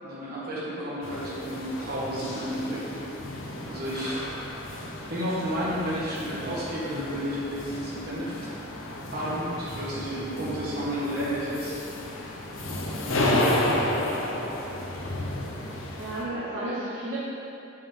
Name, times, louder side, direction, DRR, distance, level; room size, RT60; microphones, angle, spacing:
voice 1, 0.0-2.8 3.7-4.2 5.1-8.6 9.1-11.8 13.0-13.3, equal, 50° right, -7 dB, 1.6 m, -32 dB
voice 2, 0.5-1.0 10.3-10.7 15.6-17.2, right 1 dB, 70° right, -9 dB, 1.1 m, -35 dB
sound 1, 1.0-16.2, left 1 dB, 80° left, 0.8 m, -32 dB
7.7 x 5.2 x 3.7 m, 2.8 s
head